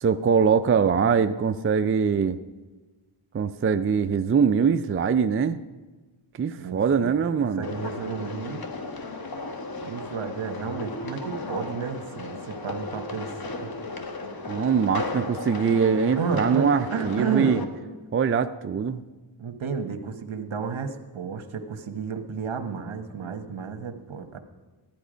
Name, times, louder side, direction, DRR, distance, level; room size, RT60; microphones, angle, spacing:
voice 1, 0.0-2.4 3.3-5.6 6.4-7.7 14.5-17.6 18.1-19.0, right 6 dB, 30° right, 10 dB, 0.4 m, -22 dB
voice 2, 6.6-7.2 7.6-8.6 9.8-13.7 16.2-17.7 19.4-24.4, right 5 dB, 70° right, 7 dB, 1.3 m, -32 dB
sound 1, 7.6-17.7, left 2 dB, 45° left, 1.3 m, -35 dB
15.0 x 10.5 x 5.1 m, 1.3 s
wide cardioid pair, 80°, 50 cm